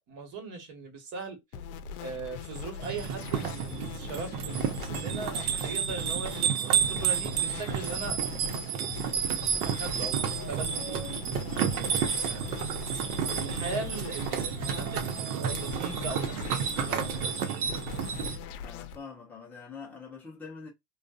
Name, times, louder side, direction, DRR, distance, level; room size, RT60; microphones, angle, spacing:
voice 1, 0.0-1.4 2.0-8.2 8.4-8.5 9.6-11.1 11.6-12.6 13.4-17.9, right 3 dB, 40° right, 1.3 m, -40 dB
sound 1, 1.5-19.0, left 7 dB, 75° left, 0.6 m, -41 dB
sound 2, 2.8-18.4, right 8 dB, 70° right, 0.8 m, -31 dB
voice 2, 18.6-20.7, left 5 dB, 5° left, 0.3 m, -44 dB
2.5 x 2.2 x 2.2 m
supercardioid pair, 140°, 46 cm